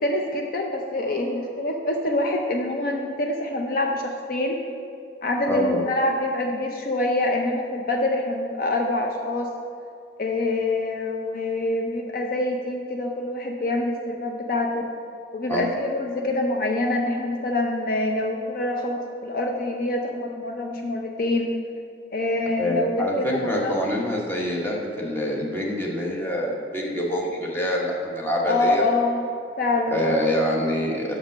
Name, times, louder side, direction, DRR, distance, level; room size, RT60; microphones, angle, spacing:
voice 1, 0.0-4.6 5.2-9.5 10.2-14.8 15.3-21.5 22.1-23.8 28.4-29.2 29.6-30.3, left 2 dB, 55° left, 2 dB, 0.5 m, -25 dB
voice 2, 5.5-5.8 15.5-15.7 22.6-28.8 29.9-31.2, equal, 10° left, -3 dB, 1.1 m, -25 dB
6.3 x 5.2 x 6.2 m, 2.4 s
head